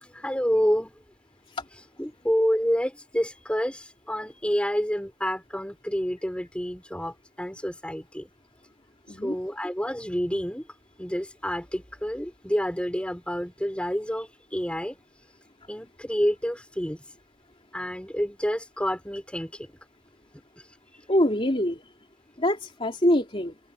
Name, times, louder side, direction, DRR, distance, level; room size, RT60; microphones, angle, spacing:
voice 1, 0.0-0.9 2.0-8.3 9.2-10.6 11.0-15.0 15.7-17.0 17.7-19.7, equal, 5° left, 5.2 m, -28 dB
voice 2, 21.1-21.8 22.4-23.5, left 1 dB, 25° left, 3.5 m, -24 dB
head